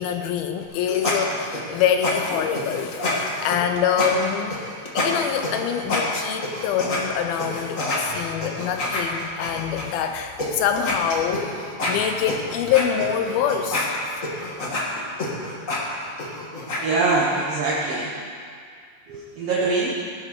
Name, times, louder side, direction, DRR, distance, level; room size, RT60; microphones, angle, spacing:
voice 1, 0.0-1.4 1.7-4.6 4.9-13.9, left 8 dB, 80° left, 6 dB, 2.5 m, -25 dB
sound 1, 0.6-7.0 7.4-9.8 10.4-10.5 10.8-16.8, left 2 dB, 35° left, 1.4 m, -27 dB
voice 2, 16.8-18.1 19.1-20.0, right 3 dB, 60° right, -5 dB, 1.7 m, -23 dB
17.5 x 9.1 x 6.5 m, 2.2 s
omnidirectional pair, 4.4 m